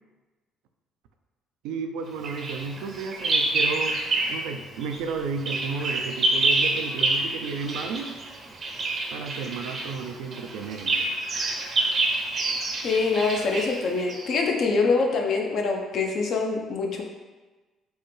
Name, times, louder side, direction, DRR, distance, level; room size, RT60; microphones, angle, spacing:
voice 1, 1.6-4.0 4.3-8.2 9.1-11.0, right 5 dB, 80° right, 5 dB, 0.3 m, -33 dB
Bird vocalization bird call bird song, 2.2-4.5 4.8-14.3, right 2 dB, 50° right, 0.6 m, -27 dB
voice 2, 12.8-17.0, left 4 dB, 60° left, 1 dB, 0.6 m, -24 dB
4.5 x 2.2 x 3.1 m, 1.2 s
supercardioid pair, 70°, 0 cm